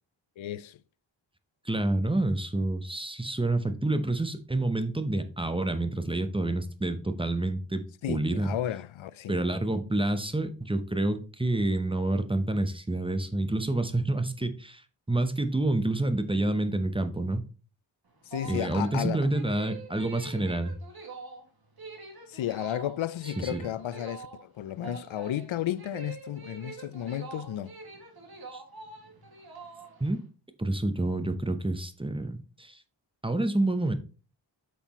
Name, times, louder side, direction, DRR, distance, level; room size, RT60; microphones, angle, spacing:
voice 1, 0.4-0.8 8.0-9.4 18.3-19.2 22.3-27.7, left 12 dB, 85° left, 0.5 m, -33 dB
voice 2, 1.6-8.5 9.3-14.8 15.1-17.4 18.5-20.8 23.4-23.6 28.5-28.6 30.0-30.2 30.6-32.8 33.2-33.9, right 2 dB, 10° right, 0.8 m, -28 dB
sound 1, 18.0-30.2, right 4 dB, 50° right, 2.0 m, -45 dB
8.4 x 5.8 x 3.0 m
wide cardioid pair, 110°, 46 cm